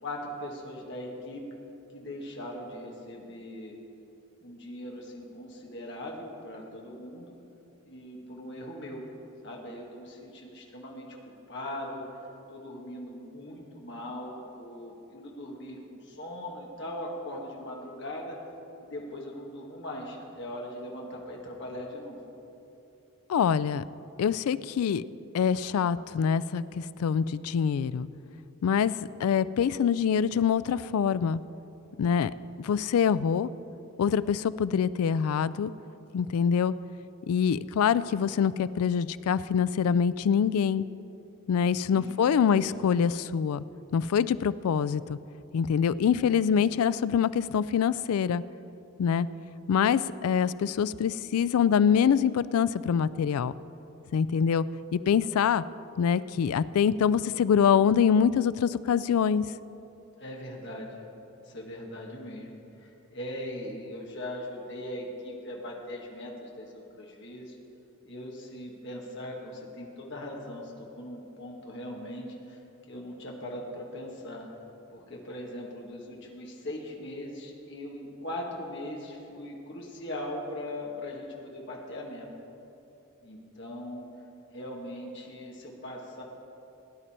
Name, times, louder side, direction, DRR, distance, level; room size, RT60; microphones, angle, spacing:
voice 1, 0.0-1.4 1.9-3.8 4.4-7.3 7.8-9.1 9.4-11.2 11.5-12.0 12.5-18.4 18.8-22.2 41.9-42.6 60.2-61.0 61.4-67.6 68.0-72.6 72.9-74.5 74.9-82.3 83.2-84.1 84.5-86.2, left 1 dB, 50° left, -1 dB, 1.7 m, -40 dB
voice 2, 23.3-23.8 24.2-25.0 25.3-28.1 28.6-31.4 32.0-32.3 32.6-33.5 34.0-35.7 36.1-36.7 37.3-40.9 41.5-43.6 43.9-45.2 45.5-48.4 49.0-49.3 49.7-53.5 54.1-54.6 54.9-55.6 56.0-59.5, left 7 dB, 80° left, 18 dB, 0.3 m, -25 dB
17.5 x 9.9 x 4.3 m, 2.9 s
head